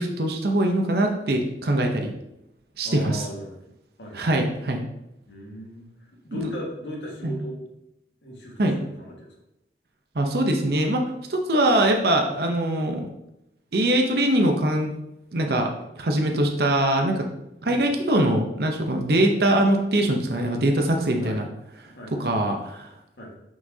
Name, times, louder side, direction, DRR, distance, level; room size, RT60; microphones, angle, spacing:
voice 1, 0.0-2.2 2.8-3.2 4.1-4.8 6.3-6.5 7.2-7.4 8.6-8.7 10.1-11.0 11.3-13.1 13.7-14.9 15.3-15.7 16.0-17.3 17.6-21.5 22.2-22.9, right 1 dB, 65° right, 2 dB, 0.7 m, -22 dB
voice 2, 2.8-3.6 4.0-4.5 5.3-7.6 8.2-9.3 17.6-17.8 21.2-21.4 21.9-22.3 23.2-23.3, equal, 80° left, -2 dB, 1.6 m, -38 dB
6.0 x 5.8 x 2.8 m, 0.86 s
head